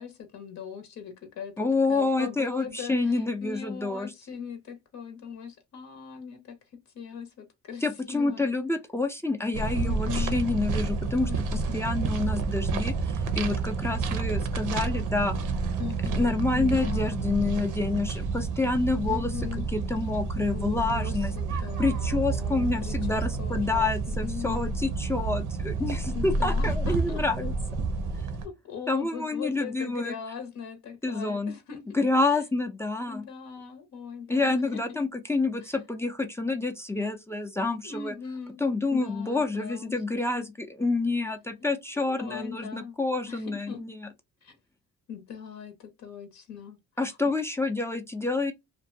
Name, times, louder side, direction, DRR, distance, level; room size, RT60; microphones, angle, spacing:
voice 1, 0.0-6.6 6.9-8.5 9.7-10.4 11.3-11.8 15.8-17.2 19.0-19.6 20.4-24.7 26.1-27.2 28.1-31.8 32.2-32.4 33.1-35.0 35.6-35.8 37.8-38.6 38.9-40.4 41.6-43.0 43.3-43.8 44.4-44.5 45.1-47.2, left 6 dB, 70° left, 0.7 m, -40 dB
voice 2, 1.6-4.1 7.8-11.3 11.7-15.3 16.2-19.3 19.7-21.3 21.8-27.5 28.9-30.1 31.0-31.5 31.9-33.2 34.3-38.1 38.6-44.1 47.0-48.5, left 3 dB, 10° left, 0.3 m, -28 dB
sound 1, 9.5-28.5, right 4 dB, 80° right, 0.6 m, -29 dB
2.5 x 2.1 x 2.5 m
cardioid pair, 90°, 30 cm